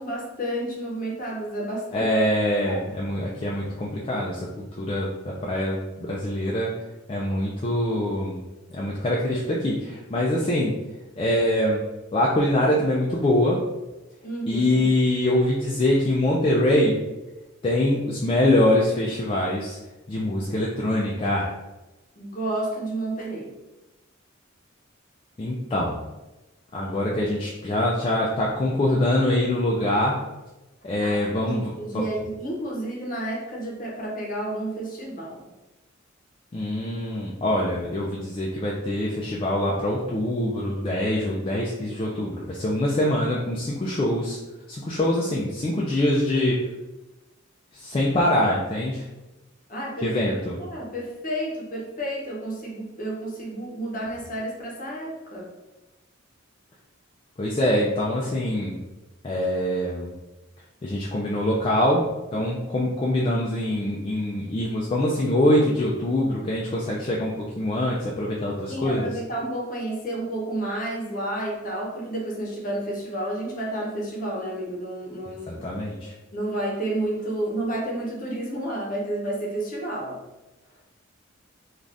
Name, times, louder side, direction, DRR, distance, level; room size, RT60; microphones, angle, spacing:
voice 1, 0.0-2.3 2.6-2.9 14.2-14.9 22.2-23.5 31.0-35.5 49.7-50.1 50.6-55.5 68.7-75.7 76.3-80.2, right 1 dB, 40° left, -2 dB, 0.7 m, -31 dB
voice 2, 1.9-6.7 7.1-8.4 8.7-10.7 11.2-11.8 12.1-13.6 14.5-17.0 17.6-19.8 20.1-21.5 25.4-26.0 26.7-30.2 30.8-32.1 36.5-44.4 44.7-46.6 47.7-49.1 50.0-50.6 57.4-58.8 59.2-60.1 60.8-62.1 62.3-69.1 75.5-76.1, left 1 dB, 25° left, -4 dB, 0.3 m, -24 dB
2.5 x 2.4 x 3.3 m, 1.0 s
head